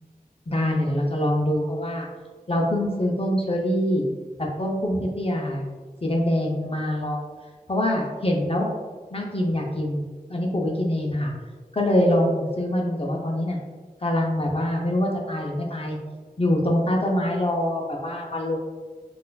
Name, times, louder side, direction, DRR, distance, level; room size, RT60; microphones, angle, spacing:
voice 1, 0.5-2.1 2.5-4.1 4.6-5.7 6.0-7.2 7.7-8.7 9.1-10.0 10.3-11.3 11.7-13.6 14.0-16.0 16.4-18.6, left 1 dB, 40° left, 0 dB, 0.5 m, -24 dB
4.1 x 2.5 x 2.2 m, 1.4 s
wide cardioid pair, 45°, 15 cm